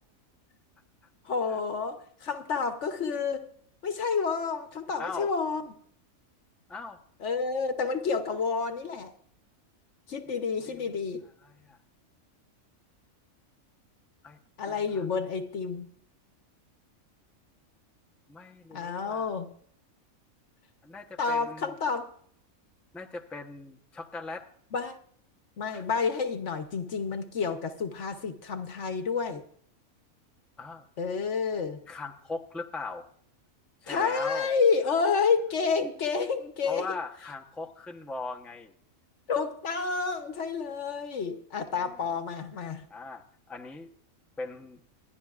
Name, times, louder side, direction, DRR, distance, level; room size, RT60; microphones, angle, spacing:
voice 1, 1.2-3.5 3.8-5.7 7.2-9.1 10.1-11.2 14.6-15.9 18.7-19.5 21.2-22.1 24.7-25.0 25.6-29.4 31.0-31.8 33.9-36.9 39.3-42.8, left 5 dB, 60° left, 7 dB, 1.2 m, -29 dB
voice 2, 5.0-5.3 6.7-7.0 10.7-10.9 11.4-11.8 14.2-14.4 14.7-15.1 18.3-19.3 20.8-21.7 22.9-24.5 25.7-25.8 30.6-30.8 31.9-33.1 33.8-34.5 36.7-38.7 41.7-42.1 42.9-43.9 44.4-44.8, left 3 dB, ahead, 3 dB, 0.6 m, -39 dB
26.0 x 11.0 x 2.4 m, 0.66 s
omnidirectional pair, 1.5 m